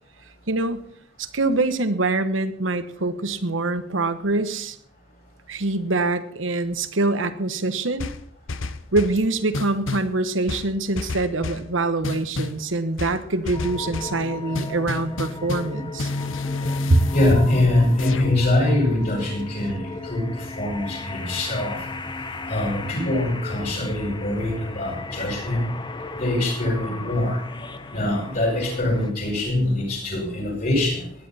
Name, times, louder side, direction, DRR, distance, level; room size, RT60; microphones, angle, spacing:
voice 1, 0.5-0.8 1.2-4.8 5.5-8.1 8.9-16.1 16.9-17.0, right 2 dB, 80° right, 11 dB, 1.2 m, -24 dB
sound 1, 8.0-9.2 9.5-10.1 10.5-11.7 12.0-12.6 13.0-14.2 14.5-15.7 16.0-18.5, left 2 dB, 85° left, 0.9 m, -30 dB
sound 2, 13.5-29.1, left 3 dB, 25° left, 1.0 m, -35 dB
voice 2, 17.1-21.9 22.5-25.6 26.1-27.4 27.9-31.1, left 1 dB, 50° left, -7 dB, 7.9 m, -23 dB
18.0 x 11.0 x 4.3 m, 0.64 s
head